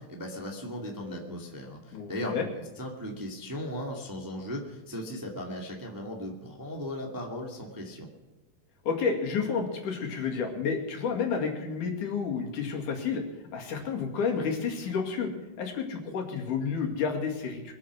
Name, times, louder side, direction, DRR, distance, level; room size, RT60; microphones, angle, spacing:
voice 1, 0.0-8.1, equal, 10° right, 0 dB, 1.4 m, -37 dB
voice 2, 1.9-2.5 8.9-13.2 13.5-15.3 15.6-17.7, left 5 dB, 75° left, 1 dB, 3.6 m, -30 dB
23.0 x 8.7 x 6.1 m, 1.1 s
omnidirectional pair, 3.7 m